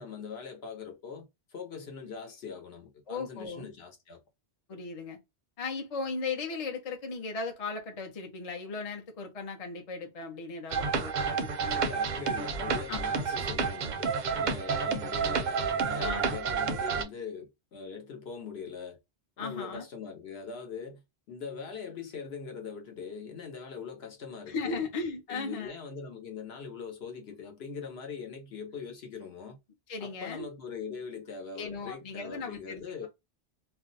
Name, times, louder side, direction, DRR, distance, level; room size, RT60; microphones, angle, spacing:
voice 1, 0.0-4.2 11.7-19.0 19.4-21.0 21.3-24.9 25.3-29.6 30.0-33.1, left 6 dB, 70° left, 1.1 m, -42 dB
voice 2, 3.1-3.7 4.7-5.2 5.6-11.9 12.9-13.2 16.0-16.4 19.4-19.8 24.5-25.7 29.9-30.5 31.5-33.1, left 4 dB, 40° left, 0.7 m, -37 dB
sound 1, 10.7-17.0, right 5 dB, 55° right, 0.6 m, -30 dB
2.5 x 2.2 x 3.8 m
omnidirectional pair, 1.1 m